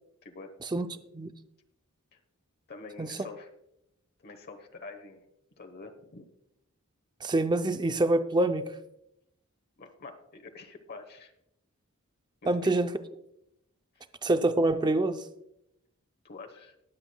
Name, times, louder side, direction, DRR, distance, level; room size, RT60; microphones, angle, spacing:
voice 1, 0.2-1.0 2.1-2.2 2.7-3.5 4.2-5.2 5.6-6.3 9.8-11.3 12.4-12.7 13.9-14.0 16.2-16.8, left 3 dB, 50° left, 6 dB, 1.0 m, -46 dB
voice 2, 7.2-8.6 12.5-12.9 14.2-15.2, right 2 dB, 20° right, 9 dB, 0.5 m, -25 dB
20.5 x 8.0 x 2.2 m, 0.81 s
head